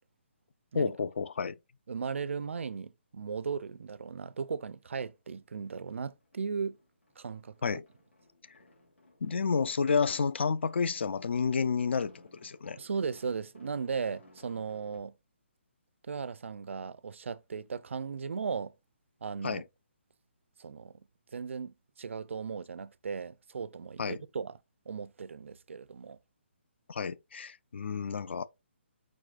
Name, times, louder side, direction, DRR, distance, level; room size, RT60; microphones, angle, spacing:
voice 1, 0.7-1.5 7.6-7.8 9.2-12.1 12.4-12.8 19.4-19.6 24.0-24.2 26.9-28.5, left 5 dB, 65° left, 0.4 m, -30 dB
voice 2, 1.9-6.8 7.2-7.8 12.8-15.2 16.0-18.7 19.2-19.6 20.6-21.1 21.3-24.6 24.9-26.2, right 5 dB, 85° right, 0.4 m, -37 dB
sound 1, 3.8-3.9 4.2-5.4 5.7-15.0, left 1 dB, 90° left, 2.8 m, -61 dB
4.8 x 4.1 x 2.4 m
hypercardioid pair, 175°, 7 cm